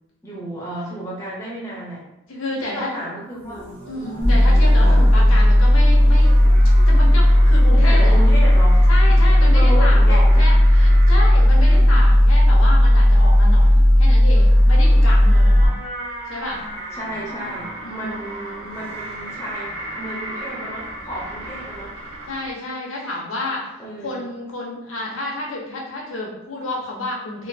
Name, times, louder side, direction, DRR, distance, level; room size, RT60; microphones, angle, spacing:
voice 1, 0.2-2.0 2.6-4.4 4.8-5.0 7.8-8.8 9.4-10.4 11.6-11.9 16.9-22.0 22.9-23.1 23.8-24.3, equal, 15° left, -5 dB, 0.6 m, -32 dB
voice 2, 2.3-2.9 3.8-6.3 6.9-8.2 8.9-15.7 16.3-16.6 17.4-18.8 22.3-23.7 24.0-27.5, left 2 dB, 85° left, -3 dB, 0.8 m, -30 dB
sound 1, 3.3-10.1, equal, 45° right, 0.6 m, -37 dB
sound 2, 3.5-22.5, right 1 dB, 85° right, 1.1 m, -37 dB
sound 3, 4.2-15.7, left 1 dB, 20° right, 1.0 m, -13 dB
3.1 x 2.6 x 2.7 m, 0.87 s
head